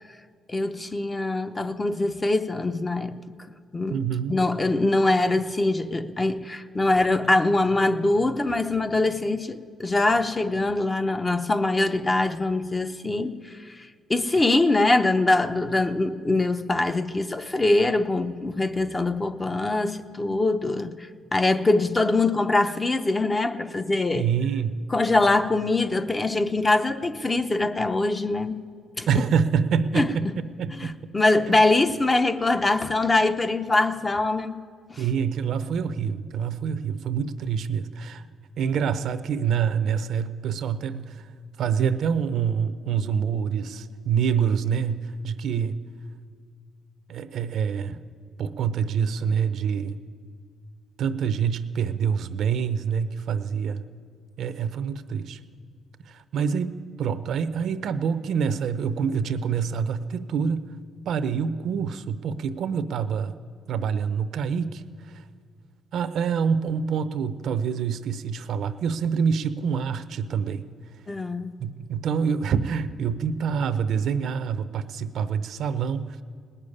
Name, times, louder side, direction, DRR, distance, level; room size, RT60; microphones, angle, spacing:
voice 1, 0.5-3.2 3.7-4.0 4.3-13.4 14.1-21.0 21.3-24.3 24.9-28.6 29.0-29.1 30.0-30.1 30.8-34.6 34.9-35.0 71.1-71.6, left 2 dB, 25° left, 0.7 m, -23 dB
voice 2, 3.9-4.4 24.1-24.8 29.1-30.9 31.5-31.6 35.0-38.2 38.6-41.3 41.6-45.8 47.1-48.0 48.4-50.0 51.0-53.8 54.4-55.4 56.1-60.8 61.1-63.3 63.7-65.2 65.9-70.7 71.6-76.2, right 7 dB, 70° right, 0.6 m, -26 dB
18.5 x 6.8 x 9.8 m
cardioid pair, 90°, 0 cm